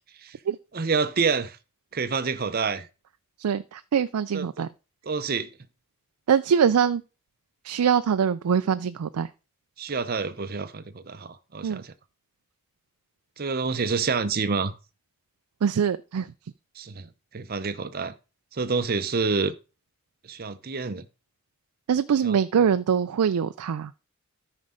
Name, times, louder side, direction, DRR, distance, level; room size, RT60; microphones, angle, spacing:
voice 1, 0.7-1.6 1.9-2.9 4.3-4.7 5.0-5.5 9.8-11.9 13.4-14.7 16.8-18.1 18.5-19.6 20.3-21.1 22.2-22.4, right 4 dB, 45° right, 0.7 m, -28 dB
voice 2, 3.4-4.7 6.3-7.0 7.6-9.3 11.6-11.8 15.6-16.3 21.9-23.9, right 7 dB, 90° right, 0.4 m, -23 dB
13.0 x 5.3 x 3.8 m
head